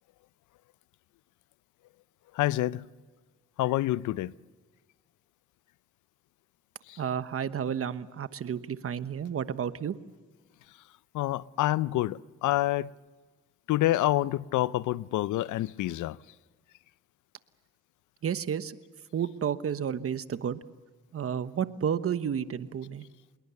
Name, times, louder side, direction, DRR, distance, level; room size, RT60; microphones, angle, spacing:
voice 1, 2.3-2.9 3.6-4.3 6.9-7.0 10.7-10.8 11.1-12.9 13.7-16.2, left 15 dB, 80° left, 0.6 m, -27 dB
voice 2, 7.0-9.9 18.2-18.8 19.1-20.6 21.1-23.1, right 8 dB, 50° right, 1.2 m, -31 dB
26.0 x 21.5 x 7.0 m
cardioid pair, 90°, 30 cm